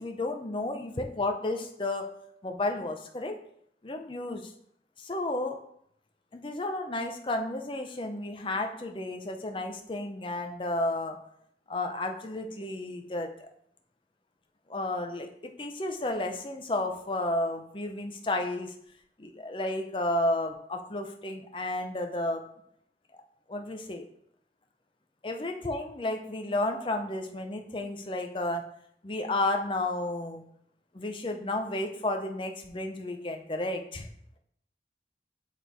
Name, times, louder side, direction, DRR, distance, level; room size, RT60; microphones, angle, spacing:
voice 1, 0.0-2.0 2.4-3.4 3.8-4.5 5.0-5.6 6.3-11.2 11.7-13.5 14.7-18.7 19.2-22.4 23.5-24.1 25.2-28.6 29.0-30.4 30.9-34.1, left 2 dB, 30° left, 4 dB, 0.6 m, -32 dB
8.3 x 3.1 x 3.9 m, 0.69 s
head